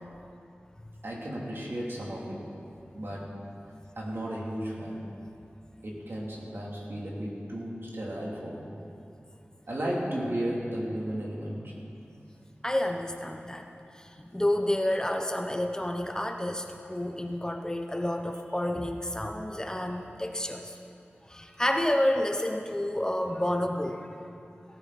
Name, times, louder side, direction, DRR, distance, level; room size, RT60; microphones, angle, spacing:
voice 1, 1.0-2.5 2.9-3.3 3.9-5.1 5.8-8.7 9.7-11.7, right 1 dB, 65° right, -4 dB, 3.2 m, -34 dB
voice 2, 12.6-13.7 13.9-20.8 21.3-24.2, left 1 dB, 15° left, 3 dB, 0.9 m, -30 dB
17.5 x 15.0 x 4.2 m, 2.7 s
wide cardioid pair, 70°, 4 cm